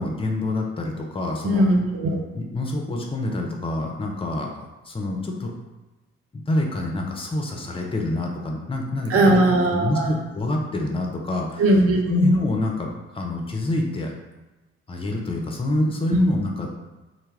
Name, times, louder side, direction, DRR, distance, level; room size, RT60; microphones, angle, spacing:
voice 1, 0.0-1.7 2.3-4.5 4.9-5.5 6.3-9.4 9.7-11.6 12.1-12.9 13.1-14.1 14.9-16.7, left 2 dB, 15° left, 1 dB, 0.5 m, -26 dB
voice 2, 1.4-2.2 9.1-10.2 11.6-12.3 16.1-16.2, right 1 dB, 45° right, 1 dB, 0.6 m, -19 dB
2.1 x 2.0 x 3.3 m, 1.1 s
figure-of-eight pair, 45°, 33 cm